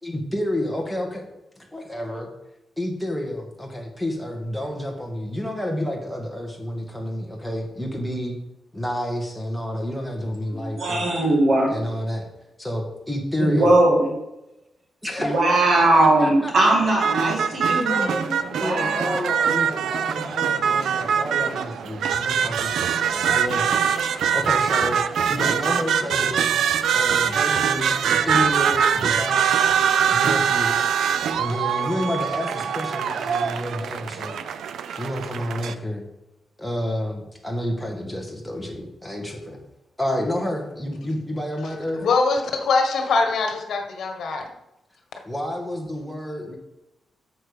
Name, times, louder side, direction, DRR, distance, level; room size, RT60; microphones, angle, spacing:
voice 1, 0.0-1.3 1.6-2.3 2.8-8.4 8.7-11.1 11.7-12.2 12.6-13.7 15.0-16.5 17.6-18.1 18.4-25.0 25.3-26.5 26.9-29.7 30.1-30.9 31.3-34.4 34.9-36.0 36.6-39.6 40.0-42.0 45.2-46.5, left 1 dB, ahead, 0 dB, 1.8 m, -30 dB
voice 2, 10.5-11.7 13.4-14.1 15.2-19.3, right 2 dB, 55° right, 0 dB, 2.3 m, -20 dB
sound 1, 17.0-35.7, right 7 dB, 90° right, 0.5 m, -23 dB
voice 3, 41.6-44.5, left 4 dB, 70° left, 3 dB, 1.4 m, -23 dB
8.8 x 6.8 x 5.2 m, 0.90 s
wide cardioid pair, 140°, 0 cm